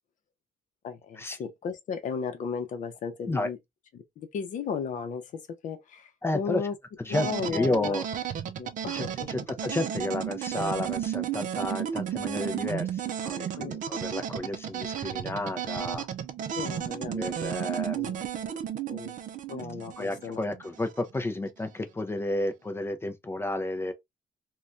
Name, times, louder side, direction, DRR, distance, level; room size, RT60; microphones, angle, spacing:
voice 1, 0.8-3.6 3.9-6.8 7.1-8.0 8.6-9.3 13.6-13.8 16.5-17.5 17.9-18.3 18.9-19.2 19.5-20.4, left 6 dB, 55° left, 0.7 m, -35 dB
voice 2, 6.2-6.6 7.0-8.1 8.9-16.1 17.1-18.0 20.0-23.9, left 2 dB, 15° left, 0.4 m, -31 dB
sound 1, 7.1-21.0, right 9 dB, 60° right, 0.4 m, -33 dB
3.2 x 2.3 x 2.5 m
cardioid pair, 150°, 15 cm